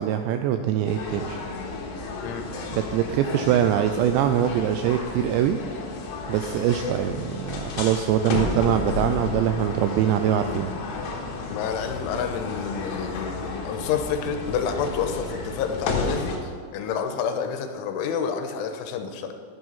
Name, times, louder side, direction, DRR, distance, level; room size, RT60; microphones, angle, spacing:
voice 1, 0.0-1.4 2.7-5.6 6.3-10.7, right 10 dB, 85° right, 8 dB, 2.5 m, -23 dB
sound 1, 0.9-16.4, left 3 dB, 70° left, 3.4 m, -32 dB
voice 2, 11.5-19.3, left 7 dB, 90° left, 6 dB, 3.3 m, -29 dB
11.5 x 9.1 x 5.5 m, 2.3 s
omnidirectional pair, 5.5 m